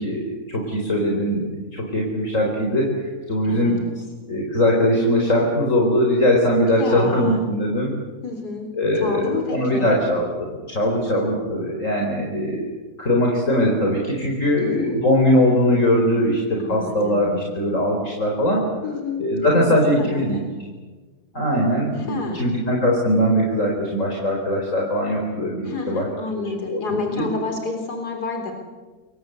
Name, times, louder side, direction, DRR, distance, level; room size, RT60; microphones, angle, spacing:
voice 1, 0.0-3.8 4.3-7.9 8.7-18.7 19.2-20.4 21.3-27.2, equal, 50° left, -1 dB, 4.9 m, -21 dB
voice 2, 3.4-3.8 6.7-7.4 8.2-8.7 9.0-9.9 14.6-14.9 16.6-17.4 18.8-19.2 19.5-19.7 20.0-20.5 22.1-22.5 25.6-28.5, left 4 dB, 80° left, 3 dB, 4.1 m, -29 dB
29.0 x 23.5 x 8.1 m, 1.3 s
omnidirectional pair, 1.7 m